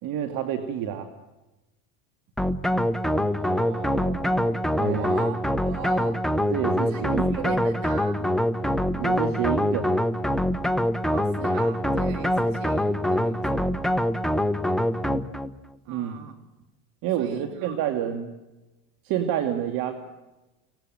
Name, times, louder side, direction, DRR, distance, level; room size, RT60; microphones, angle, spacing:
voice 1, 0.0-1.1 4.8-5.1 6.5-7.6 8.9-10.0 15.9-16.2 17.0-18.3 19.0-19.9, right 9 dB, 55° right, 7 dB, 2.5 m, -28 dB
sound 1, 2.4-15.6, equal, ahead, 0.9 m, -24 dB
voice 2, 3.1-6.3 6.9-7.0 7.3-8.3 11.1-13.8 15.8-16.5 17.2-17.8, right 10 dB, 85° right, 8 dB, 3.4 m, -40 dB
25.0 x 18.5 x 7.8 m, 1.0 s
supercardioid pair, 125°, 39 cm